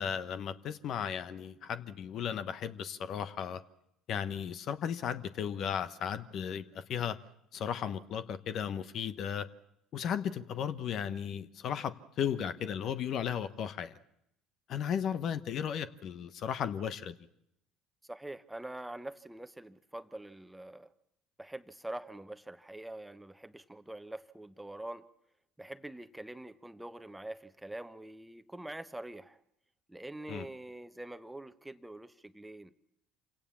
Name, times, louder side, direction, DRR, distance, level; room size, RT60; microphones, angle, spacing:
voice 1, 0.0-3.6 4.1-7.2 7.5-9.5 9.9-14.0 14.7-17.1 30.3-30.5, left 8 dB, 55° left, 12 dB, 1.0 m, -35 dB
voice 2, 18.1-20.9 21.4-25.0 25.6-29.4 29.9-32.7, right 1 dB, 10° right, 11 dB, 1.1 m, -45 dB
27.0 x 17.5 x 7.1 m, 0.79 s
hypercardioid pair, 65°, 0 cm